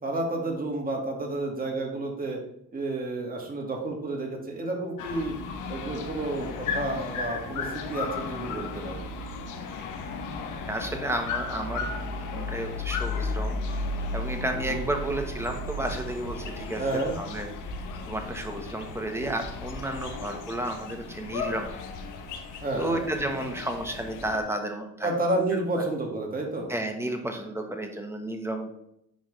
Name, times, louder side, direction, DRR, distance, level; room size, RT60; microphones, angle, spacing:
voice 1, 0.0-2.4 2.7-5.3 5.7-9.0 14.5-14.8 16.8-17.2 22.6-23.1 25.0-26.7, right 2 dB, 30° right, 0 dB, 2.0 m, -30 dB
sound 1, 5.0-24.4, left 3 dB, 85° left, 1.0 m, -35 dB
voice 2, 10.7-11.9 12.3-17.5 18.1-21.8 22.8-25.1 26.7-28.7, right 1 dB, 10° right, 4 dB, 1.2 m, -32 dB
10.0 x 3.6 x 3.4 m, 0.78 s
cardioid pair, 90°, 30 cm